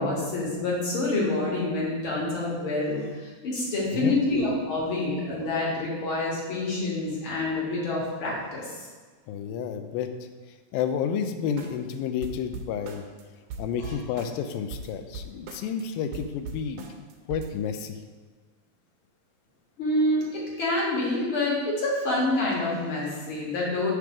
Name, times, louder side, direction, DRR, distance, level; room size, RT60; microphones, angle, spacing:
voice 1, 0.0-8.9 13.8-14.0 19.8-23.9, left 2 dB, 50° left, -4 dB, 1.7 m, -27 dB
voice 2, 9.3-10.1 10.7-13.1 13.6-16.9 17.3-18.0, left 7 dB, 85° left, 8 dB, 2.4 m, -30 dB
sound 1, 11.6-11.9 12.2-13.2 13.5-15.8 16.1-17.5, right 3 dB, 75° right, 2.1 m, -39 dB
8.1 x 3.6 x 5.9 m, 1.4 s
omnidirectional pair, 4.2 m